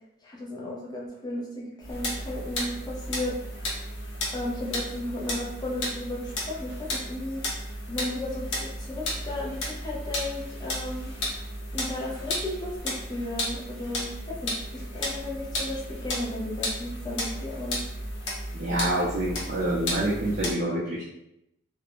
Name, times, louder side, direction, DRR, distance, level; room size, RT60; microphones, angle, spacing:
voice 1, 0.2-3.8 4.3-7.4 7.9-11.1 11.7-17.8, left 1 dB, 20° left, -4 dB, 0.5 m, -34 dB
sound 1, 1.8-20.5, left 1 dB, 70° left, 0.7 m, -34 dB
voice 2, 18.5-21.2, right 1 dB, 50° right, -6 dB, 0.5 m, -27 dB
2.4 x 2.1 x 2.9 m, 0.83 s
head